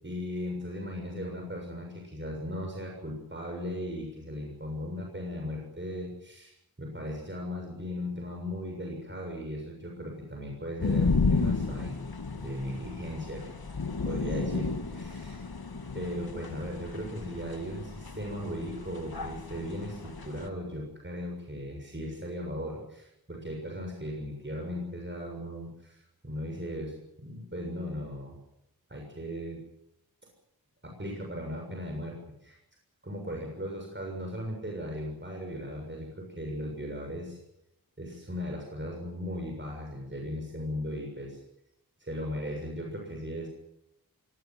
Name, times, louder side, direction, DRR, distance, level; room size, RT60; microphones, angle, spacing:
voice 1, 0.0-12.0 12.3-13.5 14.0-15.4 15.9-28.4 28.9-29.6 30.8-32.6 33.0-37.4 38.0-41.3 42.0-43.5, equal, 30° right, 1 dB, 6.8 m, -37 dB
sound 1, 10.8-20.5, left 4 dB, 75° left, 2.0 m, -32 dB
24.0 x 19.5 x 7.7 m, 0.83 s
wide cardioid pair, 60°, 37 cm